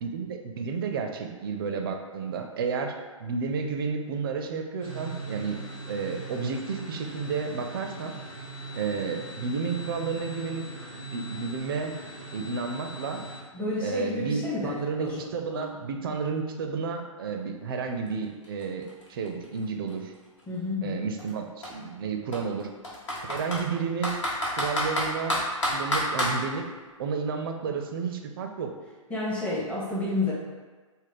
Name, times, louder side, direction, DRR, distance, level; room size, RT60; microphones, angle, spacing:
voice 1, 0.0-2.9 3.2-5.6 5.9-8.1 8.7-10.6 11.1-12.0 12.3-13.2 13.8-20.1 20.8-22.7 23.3-24.2 24.6-26.7 27.0-28.7, right 5 dB, 45° right, 4 dB, 0.4 m, -31 dB
sound 1, 4.8-13.4, right 2 dB, 85° left, 1.1 m, -40 dB
voice 2, 13.5-15.2 15.5-15.7 20.5-21.0 29.1-30.3, left 2 dB, 5° left, -7 dB, 0.6 m, -30 dB
Computer keyboard, 18.1-18.2 18.4-20.4 21.2-21.3 21.6-21.7 22.3-23.6 24.0-26.4, left 1 dB, 60° left, 1.0 m, -28 dB
3.5 x 2.0 x 4.0 m, 1.4 s
figure-of-eight pair, 115°, 17 cm